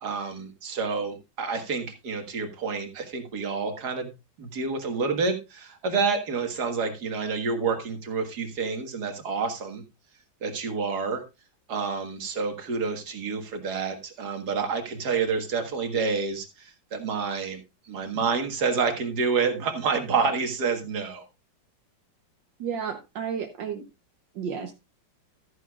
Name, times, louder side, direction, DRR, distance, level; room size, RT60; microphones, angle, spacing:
voice 1, 0.0-4.1 4.4-9.8 10.4-11.2 11.7-17.6 17.9-21.2, right 5 dB, 60° right, 6 dB, 2.1 m, -28 dB
voice 2, 22.6-23.8 24.3-24.7, right 7 dB, 75° right, 4 dB, 1.7 m, -32 dB
13.5 x 9.6 x 2.4 m, 0.24 s
omnidirectional pair, 2.0 m